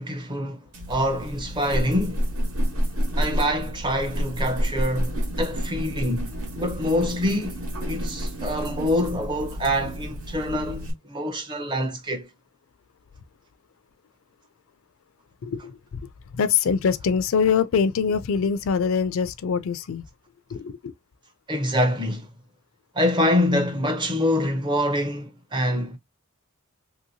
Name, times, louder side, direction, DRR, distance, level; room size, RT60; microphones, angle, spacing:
voice 1, 0.0-2.3 3.2-12.3 21.5-22.3 22.9-26.0, equal, 20° right, 0.6 m, -25 dB
sound 1, 0.7-10.9, equal, 75° right, 1.3 m, -29 dB
voice 2, 15.4-16.0 16.3-20.0 20.5-20.9, left 6 dB, 60° left, 0.4 m, -24 dB
3.0 x 2.7 x 2.6 m
head